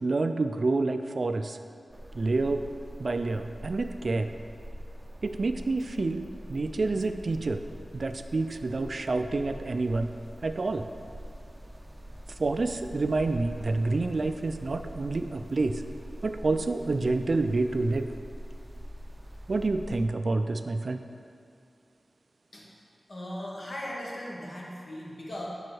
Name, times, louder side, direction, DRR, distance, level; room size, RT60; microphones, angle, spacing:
voice 1, 0.0-1.6 2.1-2.7 3.0-4.3 5.2-6.2 6.5-7.6 7.9-10.1 10.4-10.9 12.4-15.8 16.2-18.1 19.5-21.0, right 3 dB, 60° right, 8 dB, 0.3 m, -28 dB
sound 1, 1.9-20.1, equal, 20° right, 0.6 m, -44 dB
voice 2, 23.1-25.5, left 1 dB, 60° left, -4 dB, 1.3 m, -38 dB
5.2 x 4.6 x 6.2 m, 2.4 s
wide cardioid pair, 75°, 0 cm